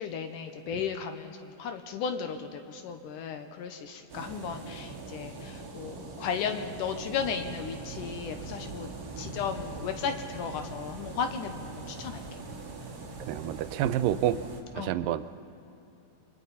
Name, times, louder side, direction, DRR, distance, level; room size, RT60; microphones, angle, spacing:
voice 1, 0.0-8.9 9.2-12.2 14.8-14.9, left 6 dB, 80° left, 7 dB, 2.5 m, -35 dB
sound 1, 4.1-14.6, right 3 dB, 35° right, 2.1 m, -42 dB
voice 2, 13.3-14.4 14.8-15.2, right 12 dB, 90° right, 13 dB, 2.3 m, -28 dB
29.5 x 23.0 x 4.1 m, 2.8 s
omnidirectional pair, 3.8 m